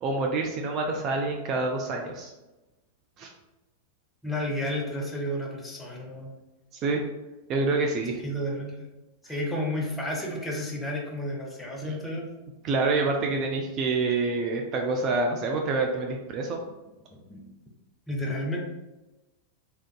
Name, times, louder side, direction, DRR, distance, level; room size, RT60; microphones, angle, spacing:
voice 1, 0.0-2.3 3.2-3.3 6.8-7.0 7.5-8.2 11.8-11.9 12.6-16.6, right 3 dB, 35° right, 2 dB, 0.3 m, -27 dB
voice 2, 4.2-6.3 8.2-8.9 9.2-12.3 17.1-17.4 18.1-18.6, left 1 dB, 10° left, -1 dB, 0.6 m, -31 dB
3.4 x 2.5 x 2.2 m, 1.0 s
figure-of-eight pair, 90°, 0 cm